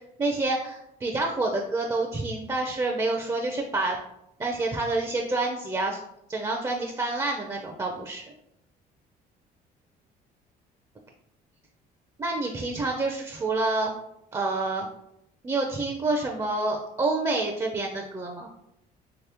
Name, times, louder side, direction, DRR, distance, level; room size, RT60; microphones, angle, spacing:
voice 1, 0.2-4.0 4.4-6.0 6.3-8.2 12.2-13.9 14.3-14.9 15.4-18.5, right 2 dB, 20° right, 1 dB, 0.5 m, -28 dB
3.2 x 2.9 x 3.3 m, 0.81 s
cardioid pair, 110°, 17 cm